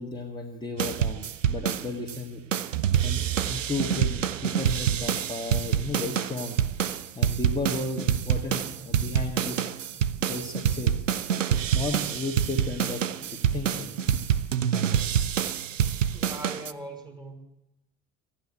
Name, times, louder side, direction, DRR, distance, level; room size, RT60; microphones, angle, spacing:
voice 1, 0.0-2.4 3.0-6.6 7.2-9.7 10.3-11.0 11.7-14.0, left 3 dB, 10° left, 0 dB, 1.8 m, -34 dB
sound 1, 0.8-2.2 2.5-16.7, right 9 dB, 85° right, 0.5 m, -27 dB
voice 2, 16.1-17.3, right 2 dB, 10° right, 3 dB, 3.1 m, -40 dB
14.5 x 9.8 x 8.8 m, 0.91 s
figure-of-eight pair, 55°, 37 cm